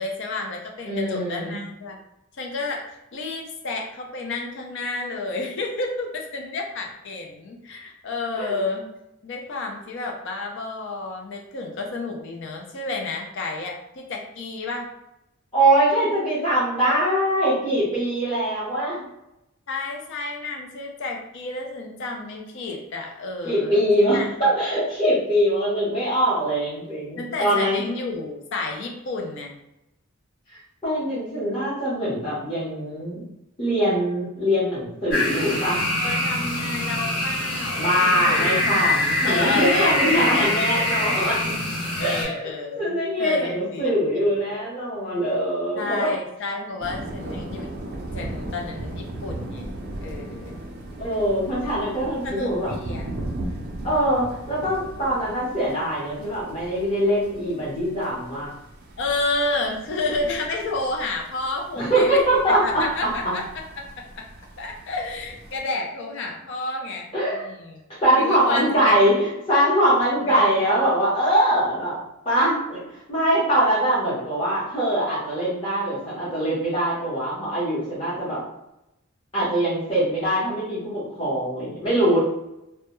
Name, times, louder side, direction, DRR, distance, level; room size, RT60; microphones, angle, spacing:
voice 1, 0.0-2.0 2.4-8.8 9.2-14.9 19.7-24.3 27.2-29.5 36.0-38.5 39.2-41.2 42.0-44.4 45.7-47.7 48.1-49.7 50.0-50.6 52.2-53.1 59.0-62.2 62.6-63.4 63.8-63.9 64.2-64.3 64.6-67.8 68.2-69.0 70.3-70.6, left 3 dB, 55° left, 1 dB, 0.4 m, -30 dB
voice 2, 0.8-1.6 8.4-8.6 15.5-19.0 23.4-27.8 30.8-33.2 33.6-35.8 37.8-41.5 42.0-42.5 42.8-46.1 51.0-52.7 53.8-58.5 61.8-63.3 67.1-67.5 68.0-71.9 72.2-78.4 79.3-82.2, right 1 dB, 25° left, -10 dB, 0.8 m, -22 dB
sound 1, 35.1-42.2, left 1 dB, 85° left, 1.2 m, -24 dB
sound 2, 46.8-65.6, right 1 dB, 45° right, 0.4 m, -37 dB
2.1 x 2.1 x 2.9 m, 0.89 s
head